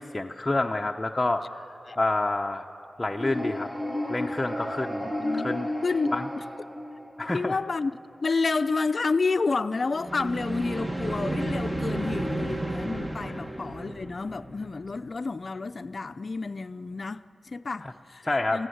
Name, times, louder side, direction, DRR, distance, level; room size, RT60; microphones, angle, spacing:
voice 1, 0.0-1.6 2.0-2.7 3.0-3.7 4.1-5.7 6.1-6.3 7.2-7.6 18.3-18.6, left 2 dB, 20° left, 0.8 m, -28 dB
sound 1, 3.0-7.4 9.9-14.9, equal, 20° right, 1.8 m, -32 dB
voice 2, 5.0-6.2 7.3-7.9 8.2-18.7, left 4 dB, 55° left, 0.6 m, -30 dB
23.5 x 15.5 x 8.0 m
cardioid pair, 60°, 0 cm